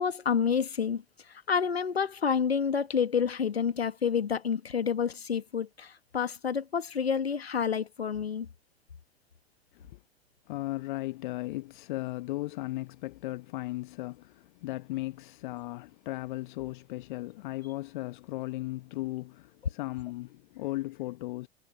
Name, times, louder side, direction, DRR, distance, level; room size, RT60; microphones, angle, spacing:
voice 1, 0.0-8.5, left 7 dB, 75° left, 1.8 m, -29 dB
voice 2, 10.5-21.5, left 19 dB, 50° left, 1.1 m, -36 dB
figure-of-eight pair, 90°, 31 cm